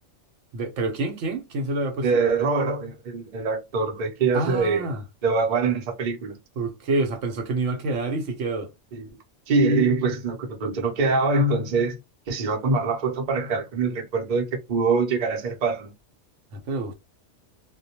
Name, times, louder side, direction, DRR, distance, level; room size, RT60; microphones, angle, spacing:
voice 1, 0.5-2.1 4.3-5.0 6.6-8.7 16.5-16.9, right 2 dB, 75° right, 0.9 m, -27 dB
voice 2, 2.0-4.9 5.2-6.4 8.9-9.0 9.5-12.0 12.3-15.9, right 4 dB, 45° right, 0.7 m, -24 dB
2.2 x 2.1 x 2.8 m
omnidirectional pair, 1.3 m